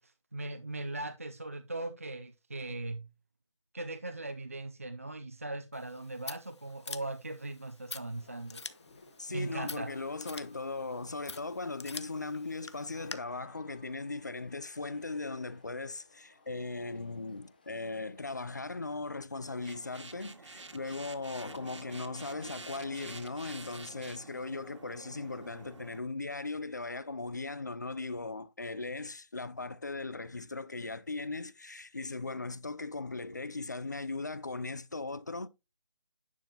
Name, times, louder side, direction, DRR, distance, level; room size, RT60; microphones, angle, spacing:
voice 1, 0.0-3.1 3.7-8.6 9.3-9.9, right 2 dB, 30° right, 0.4 m, -39 dB
Scissors, 5.7-13.1, left 4 dB, 65° left, 1.0 m, -47 dB
sound 1, 8.1-18.4, left 3 dB, 20° left, 0.9 m, -61 dB
voice 2, 9.2-35.5, left 3 dB, 35° left, 0.4 m, -38 dB
sound 2, 19.4-26.0, right 3 dB, 75° right, 2.0 m, -48 dB
10.0 x 5.8 x 2.8 m
figure-of-eight pair, 175°, 16 cm